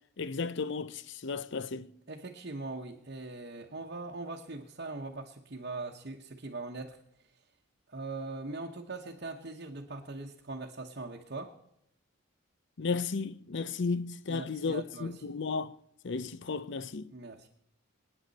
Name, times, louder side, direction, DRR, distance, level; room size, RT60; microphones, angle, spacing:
voice 1, 0.2-1.9 12.8-15.7 16.0-17.1, left 4 dB, 55° left, 0.6 m, -34 dB
voice 2, 2.1-7.0 7.9-11.5 14.3-15.2 17.1-17.5, right 3 dB, 50° right, 1.0 m, -41 dB
26.5 x 9.5 x 4.1 m
head